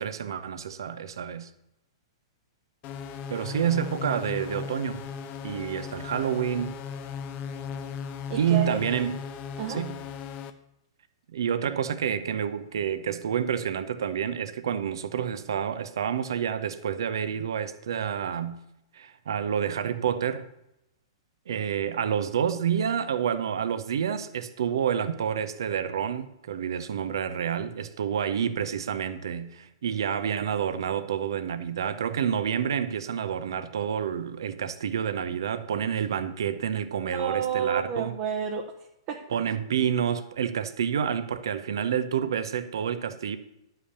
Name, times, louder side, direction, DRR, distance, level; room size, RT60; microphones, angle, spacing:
voice 1, 0.0-1.5 3.3-5.1 5.4-6.7 8.3-9.2 9.7-10.0 11.3-18.6 18.9-20.5 21.5-38.1 39.3-43.4, right 8 dB, 65° right, 0.8 m, -28 dB
sound 1, 2.8-10.5, left 7 dB, 35° left, 0.9 m, -37 dB
voice 2, 8.3-8.8 9.6-9.8 37.0-39.2, right 7 dB, 45° right, 1.1 m, -30 dB
11.0 x 5.8 x 6.7 m
figure-of-eight pair, 110°, 2 cm